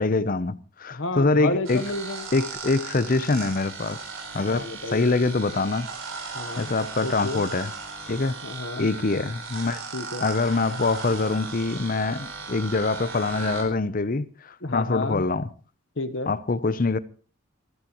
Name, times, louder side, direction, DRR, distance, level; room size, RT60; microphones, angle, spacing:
voice 1, 0.0-1.9 2.3-4.0 4.3-5.9 6.6-7.7 8.1-8.3 8.8-9.8 10.2-15.5 16.3-17.0, left 3 dB, 40° left, 0.6 m, -24 dB
voice 2, 0.9-2.3 4.5-5.1 6.3-6.7 7.0-7.4 8.4-8.9 9.9-10.3 13.4-13.5 14.6-15.2 16.0-16.3, left 2 dB, 65° left, 1.1 m, -31 dB
sound 1, 1.6-13.6, right 4 dB, 75° right, 4.3 m, -37 dB
28.5 x 11.5 x 3.0 m
head